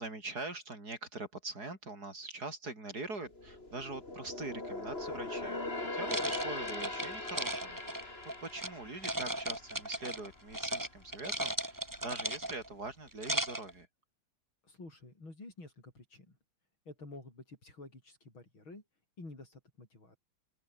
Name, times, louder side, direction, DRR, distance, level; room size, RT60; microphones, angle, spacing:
voice 1, 0.0-8.2 8.4-13.9, right 2 dB, 45° right, 6.9 m, -43 dB
sound 1, 3.1-10.7 11.0-11.3 11.8-12.5 12.9-13.0, left 2 dB, 30° left, 4.2 m, -41 dB
sound 2, 6.1-8.7 9.0-10.3 10.5-10.9 11.1-12.7 13.1-13.7, right 1 dB, 10° right, 2.7 m, -36 dB
voice 2, 14.6-16.4 16.8-18.8 19.2-20.2, left 2 dB, 75° left, 8.5 m, -50 dB
open air
omnidirectional pair, 2.2 m